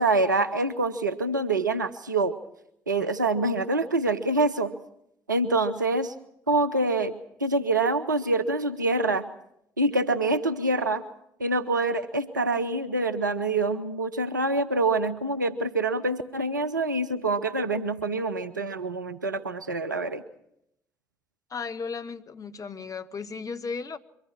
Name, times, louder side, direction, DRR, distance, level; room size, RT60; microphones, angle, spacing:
voice 1, 0.0-2.3 2.9-4.7 5.3-6.1 6.5-7.1 7.4-9.2 9.8-11.0 11.4-20.2, right 2 dB, 85° right, 12 dB, 0.7 m, -26 dB
voice 2, 21.5-24.0, left 5 dB, 35° left, 10 dB, 1.1 m, -35 dB
23.5 x 14.0 x 8.5 m, 0.77 s
figure-of-eight pair, 45°, 10 cm